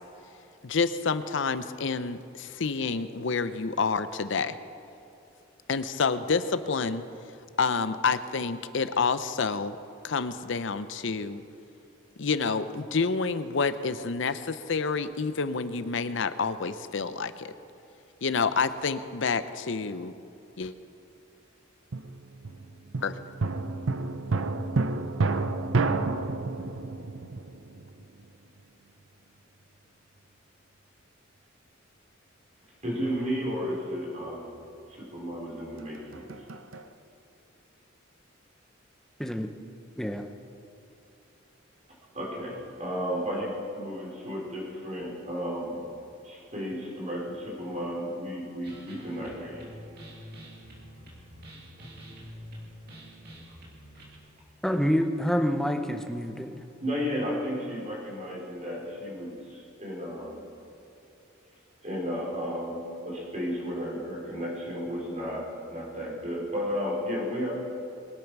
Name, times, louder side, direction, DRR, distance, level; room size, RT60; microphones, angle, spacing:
voice 1, 0.6-4.6 5.7-7.0 7.6-9.8 10.0-11.4 12.2-17.5 18.2-20.1 20.6-20.7 23.0-23.2, left 4 dB, 65° left, 12 dB, 0.7 m, -28 dB
sound 1, 21.9-28.3 35.8-36.9, right 3 dB, 80° right, 0.7 m, -30 dB
voice 2, 32.8-34.6 34.9-36.3 42.1-46.0 46.2-49.7 56.8-60.4 61.8-67.5, equal, 35° right, -3 dB, 4.2 m, -33 dB
voice 3, 39.9-40.3 54.6-56.6, equal, ahead, 5 dB, 0.8 m, -27 dB
sound 2, 48.6-54.2, equal, 55° right, 2.8 m, -46 dB
21.5 x 8.7 x 6.1 m, 2.8 s
head